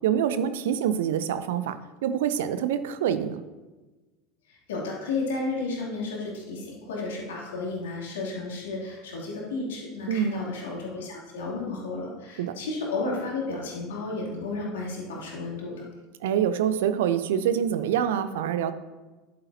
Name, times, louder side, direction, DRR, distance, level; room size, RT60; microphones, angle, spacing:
voice 1, 0.0-3.4 10.1-10.4 12.4-12.6 16.2-18.7, right 9 dB, 65° right, 12 dB, 0.5 m, -26 dB
voice 2, 4.5-15.9, left 3 dB, 65° left, -3 dB, 2.7 m, -33 dB
11.0 x 8.7 x 2.8 m, 1.2 s
figure-of-eight pair, 75°, 0 cm